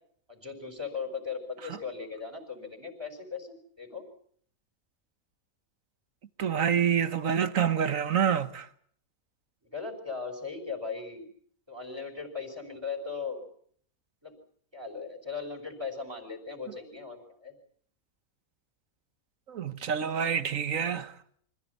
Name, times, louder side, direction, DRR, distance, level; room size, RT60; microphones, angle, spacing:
voice 1, 0.3-4.0 9.6-11.2 11.7-13.4 14.2-14.4 14.7-17.5, left 5 dB, 15° right, 5.2 m, -38 dB
voice 2, 6.4-8.7 19.5-21.1, right 8 dB, 65° right, 1.5 m, -27 dB
25.5 x 15.5 x 9.4 m
omnidirectional pair, 1.5 m